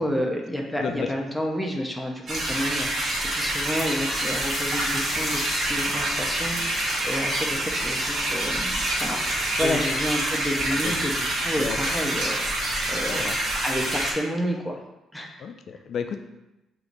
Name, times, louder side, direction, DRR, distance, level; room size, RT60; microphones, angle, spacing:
voice 1, 0.0-14.8 15.1-15.5, equal, ahead, 0 dB, 0.5 m, -30 dB
sound 1, 2.3-14.1, right 1 dB, 40° right, 1.0 m, -27 dB
sound 2, 4.0-8.1, left 2 dB, 25° left, 1.2 m, -39 dB
voice 2, 13.1-13.5 15.4-16.2, left 7 dB, 50° left, 7 dB, 0.4 m, -32 dB
6.3 x 2.9 x 2.6 m, 0.97 s
cardioid pair, 155°, 0 cm